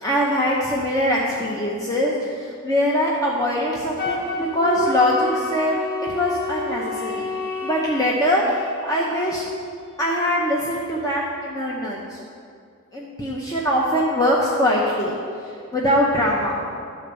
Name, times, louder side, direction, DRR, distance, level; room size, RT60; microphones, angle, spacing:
voice 1, 0.0-9.4 10.0-12.2 12.9-15.2 15.4-16.6, equal, 15° left, -4 dB, 0.8 m, -22 dB
Wind instrument woodwind instrument, 4.0-7.9, left 2 dB, 45° left, 1.3 m, -28 dB
11.5 x 4.2 x 6.9 m, 2.3 s
head